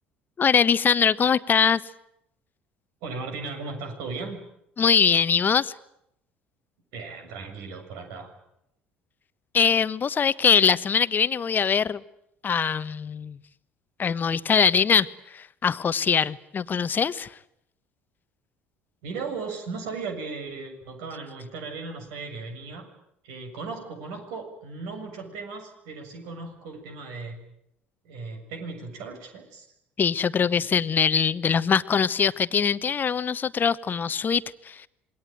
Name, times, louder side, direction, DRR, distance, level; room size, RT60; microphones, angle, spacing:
voice 1, 0.4-1.8 4.8-5.7 9.5-12.0 12.4-13.4 14.0-17.4 30.0-34.9, left 7 dB, 35° left, 16 dB, 1.2 m, -22 dB
voice 2, 3.0-4.4 6.9-8.3 19.0-22.9 23.2-27.4 28.0-29.7 30.6-30.8, right 4 dB, 60° right, 5 dB, 7.2 m, -36 dB
27.5 x 23.5 x 9.3 m, 0.78 s
figure-of-eight pair, 60°, 6 cm